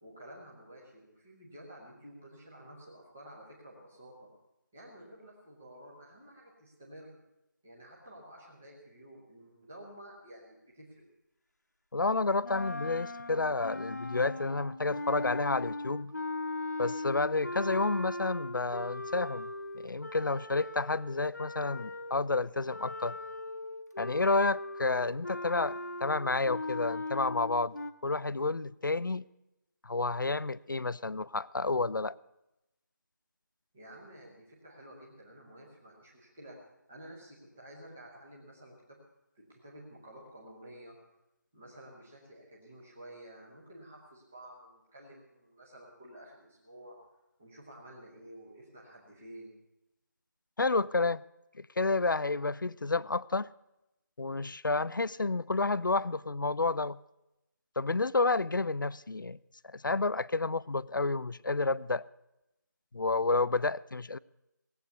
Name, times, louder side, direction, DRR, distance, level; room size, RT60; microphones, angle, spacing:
voice 1, 0.0-4.3 4.7-7.1 7.6-11.0 33.7-36.6 36.9-39.0 39.3-40.9 41.5-46.9 47.4-49.5, right 1 dB, 5° right, 0.8 m, -51 dB
voice 2, 11.9-16.1 16.8-19.5 19.8-23.1 24.0-27.8 28.0-29.2 29.8-32.2 50.6-51.2 51.6-53.5 54.2-57.0 57.8-59.4 59.7-62.0 62.9-64.2, left 3 dB, 80° left, 0.6 m, -30 dB
sound 1, 12.4-22.3 22.7-27.9, left 2 dB, 60° left, 1.4 m, -39 dB
18.5 x 8.5 x 9.3 m
figure-of-eight pair, 180°, 10 cm